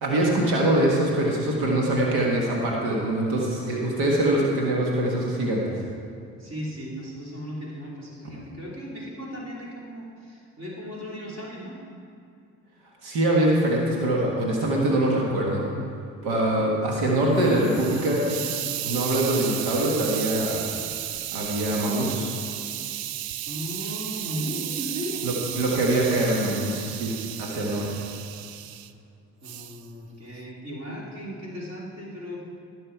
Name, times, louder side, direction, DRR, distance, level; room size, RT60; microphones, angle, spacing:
voice 1, 0.0-5.8 13.0-15.6 16.2-18.2 18.8-20.6 21.3-22.3 25.2-28.0, right 1 dB, 90° right, -2 dB, 1.5 m, -23 dB
voice 2, 6.4-11.8 16.6-16.7 23.5-25.3 29.4-32.4, equal, 40° right, -5 dB, 2.9 m, -36 dB
Hiss, 17.1-28.9 29.4-29.8, right 12 dB, 65° right, 0.6 m, -34 dB
16.0 x 6.6 x 4.5 m, 2.5 s
supercardioid pair, 60°, 39 cm